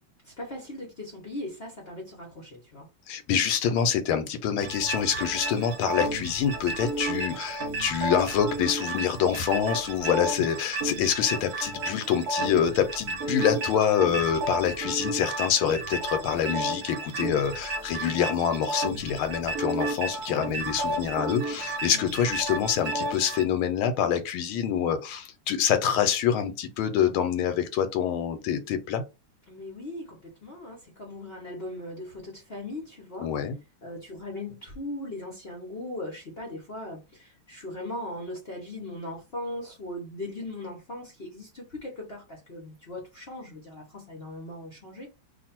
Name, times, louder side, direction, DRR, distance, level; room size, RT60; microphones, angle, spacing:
voice 1, 0.4-2.9 29.5-33.3 33.8-45.1, left 1 dB, 45° left, 0.8 m, -39 dB
voice 2, 3.1-29.0 33.2-33.6, left 8 dB, 85° left, 1.5 m, -26 dB
sound 1, 4.6-23.4, right 2 dB, 55° right, 1.2 m, -32 dB
3.0 x 2.6 x 4.3 m
omnidirectional pair, 2.3 m